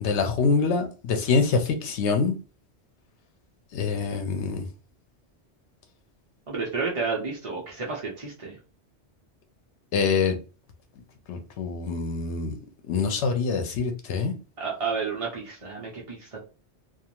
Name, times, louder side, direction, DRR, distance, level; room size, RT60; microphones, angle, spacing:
voice 1, 0.0-2.3 3.7-4.6 9.9-10.4 11.3-12.6 12.9-14.3, left 5 dB, 85° left, 0.9 m, -25 dB
voice 2, 6.5-8.6 14.6-16.4, right 4 dB, 35° right, 0.6 m, -31 dB
2.5 x 2.4 x 2.9 m
omnidirectional pair, 1.1 m